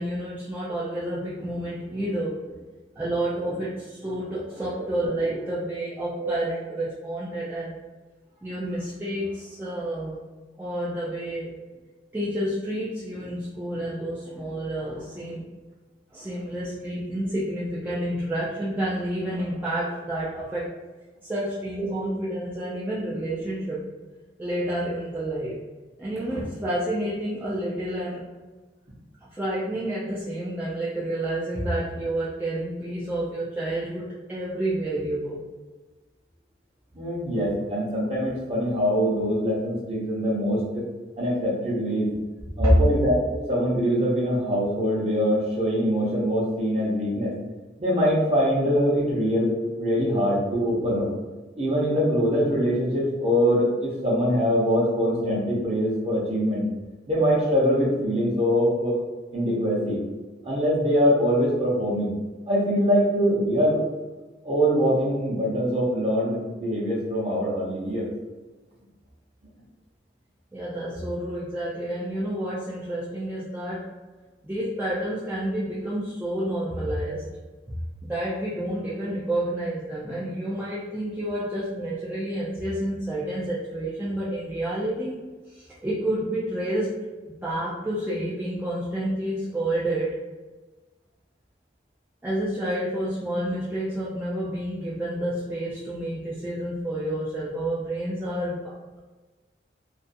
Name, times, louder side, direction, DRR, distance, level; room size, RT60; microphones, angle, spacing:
voice 1, 0.0-2.6 3.0-7.8 8.4-10.2 10.6-11.6 12.1-15.4 16.1-20.7 21.2-23.8 24.4-25.6 26.0-28.3 29.2-35.4 42.6-42.8 70.5-73.9 74.4-77.3 78.0-85.2 85.5-90.2 92.2-98.8, right 1 dB, 10° right, -9 dB, 0.3 m, -29 dB
voice 2, 36.9-40.8 41.2-42.1 42.6-47.3 47.8-49.5 49.8-51.1 51.6-56.6 57.1-59.0 59.3-60.0 60.4-62.1 62.5-63.8 64.4-68.1, equal, 35° right, -5 dB, 0.7 m, -23 dB
2.4 x 2.3 x 2.5 m, 1.3 s
head